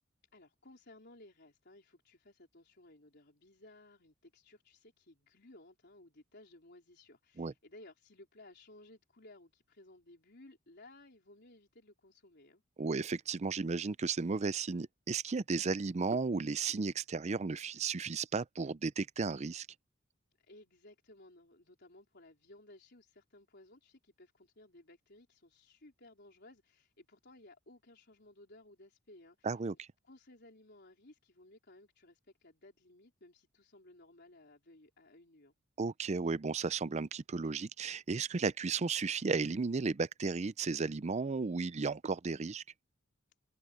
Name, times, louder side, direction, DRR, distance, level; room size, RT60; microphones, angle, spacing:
voice 1, 0.3-12.6 20.4-29.8 30.0-35.5, left 2 dB, 55° left, 4.2 m, -59 dB
voice 2, 12.8-19.7 29.4-29.7 35.8-42.6, right 4 dB, 35° right, 0.5 m, -34 dB
head